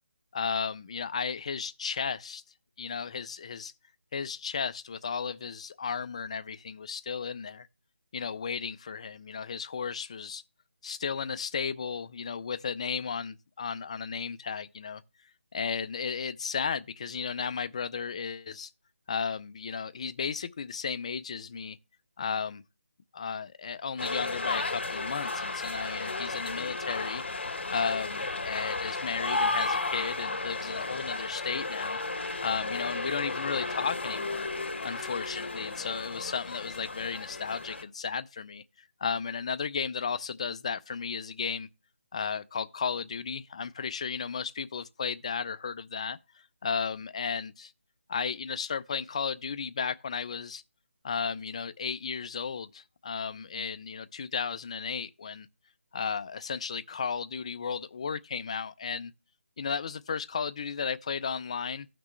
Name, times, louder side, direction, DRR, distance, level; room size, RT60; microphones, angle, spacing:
voice 1, 0.3-2.4 2.8-3.7 4.1-7.7 8.1-10.4 10.8-15.0 15.5-18.7 19.1-21.8 22.2-22.6 23.1-27.2 27.7-34.5 34.8-41.7 42.1-46.2 46.6-47.7 48.1-50.6 51.0-55.5 55.9-59.1 59.6-61.9, left 6 dB, 30° left, 0.4 m, -34 dB
sound 1, 24.0-37.8, left 3 dB, 60° left, 2.1 m, -33 dB
14.0 x 6.0 x 3.1 m
figure-of-eight pair, 170°, 7 cm